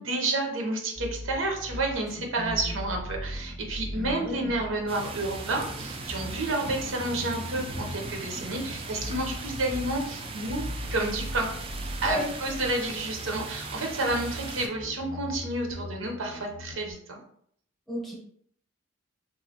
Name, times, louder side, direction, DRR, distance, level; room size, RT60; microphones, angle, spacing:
voice 1, 0.0-11.6 12.0-17.2, right 2 dB, 85° right, 1 dB, 0.7 m, -30 dB
sound 1, 1.0-16.9, equal, 40° left, 0.5 m, -40 dB
voice 2, 2.4-2.8 3.9-4.5 12.0-12.7 17.9-18.2, equal, ahead, -2 dB, 0.8 m, -34 dB
sound 2, 4.9-14.7, right 3 dB, 30° right, 0.3 m, -39 dB
3.0 x 2.4 x 2.8 m, 0.65 s
head